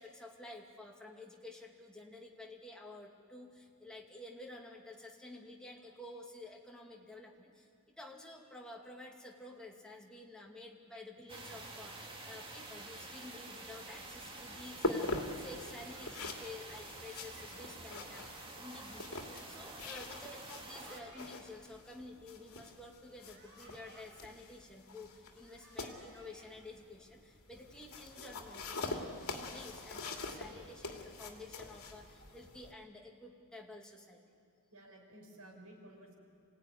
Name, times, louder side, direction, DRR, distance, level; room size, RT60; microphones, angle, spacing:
voice 1, 0.0-34.2, left 2 dB, 5° left, -1 dB, 2.3 m, -51 dB
sound 1, 11.3-21.0, right 2 dB, 25° right, 2.3 m, -49 dB
sound 2, 13.9-32.7, left 2 dB, 70° left, 2.7 m, -44 dB
sound 3, 15.4-16.0 16.9-17.5 18.6-19.4 20.4-21.3 23.0-24.1 25.2-26.5, right 2 dB, 50° right, 5.5 m, -61 dB
voice 2, 34.7-36.1, right 1 dB, 80° right, 0 dB, 5.7 m, -55 dB
27.0 x 17.0 x 10.0 m, 2.4 s
head